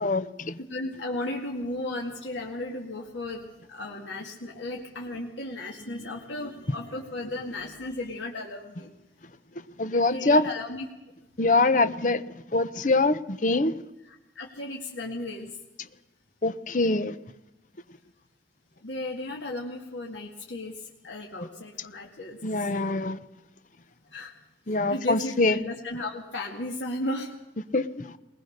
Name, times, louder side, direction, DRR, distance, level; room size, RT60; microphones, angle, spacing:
voice 1, 0.0-0.6 9.8-10.5 11.4-12.2 12.5-13.7 16.4-17.1 22.4-23.2 24.7-25.6 27.7-28.2, left 2 dB, 45° left, 13 dB, 0.8 m, -24 dB
voice 2, 0.6-8.9 10.1-10.9 14.1-15.6 18.8-22.7 24.0-24.3 24.9-27.3, left 2 dB, 85° left, 0 dB, 2.1 m, -35 dB
20.5 x 20.0 x 6.6 m, 0.99 s
head